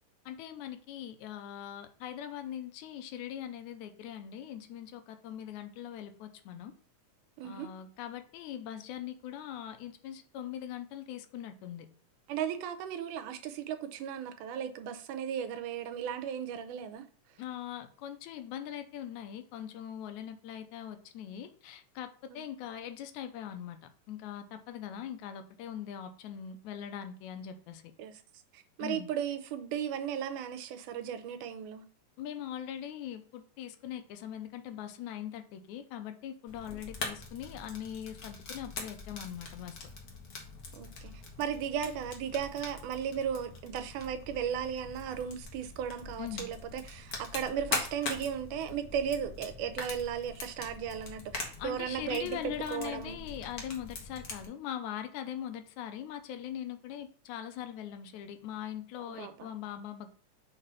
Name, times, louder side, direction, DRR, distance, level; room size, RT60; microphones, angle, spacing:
voice 1, 0.3-6.7 7.4-11.9 17.4-23.8 24.1-27.8 28.8-29.1 32.2-39.8 46.2-46.5 51.6-60.2, left 10 dB, 80° left, 1.9 m, -41 dB
voice 2, 12.3-17.1 22.3-22.5 28.0-28.2 28.5-31.8 40.7-41.1 41.4-53.2 59.1-59.3, right 8 dB, 90° right, 2.2 m, -36 dB
Fire, 36.5-54.5, left 3 dB, 55° left, 1.0 m, -42 dB
5.0 x 4.0 x 5.5 m
omnidirectional pair, 3.5 m